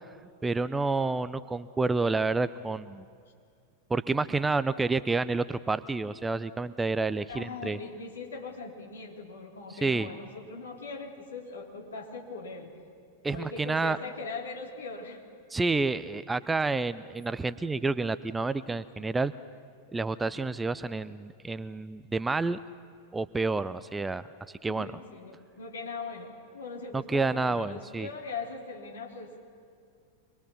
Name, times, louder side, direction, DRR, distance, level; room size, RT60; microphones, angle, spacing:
voice 1, 0.4-3.0 3.9-7.8 9.8-10.1 13.2-14.0 15.5-19.3 19.9-22.6 23.1-24.3 24.6-24.9 26.9-28.1, right 3 dB, 10° right, 15 dB, 0.5 m, -29 dB
voice 2, 7.3-12.7 13.3-15.2 24.7-29.3, left 4 dB, 65° left, 0 dB, 3.3 m, -40 dB
25.5 x 21.5 x 7.1 m, 2.2 s
figure-of-eight pair, 90°, 0 cm